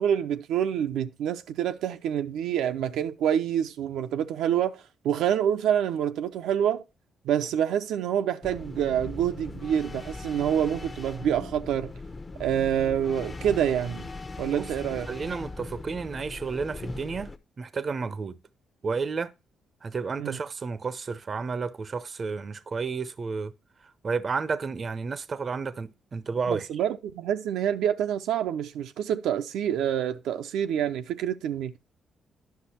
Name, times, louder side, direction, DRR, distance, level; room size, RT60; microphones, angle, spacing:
voice 1, 0.0-6.8 7.2-11.9 12.4-14.1 14.4-15.1 20.2-20.4 26.5-31.8, right 9 dB, 85° right, 0.6 m, -27 dB
sound 1, 8.4-17.4, left 3 dB, 25° left, 0.8 m, -39 dB
voice 2, 15.1-18.4 18.8-19.3 19.8-23.5 23.8-26.7, right 5 dB, 40° right, 0.6 m, -32 dB
10.5 x 6.1 x 4.2 m
cardioid pair, 90°, 0 cm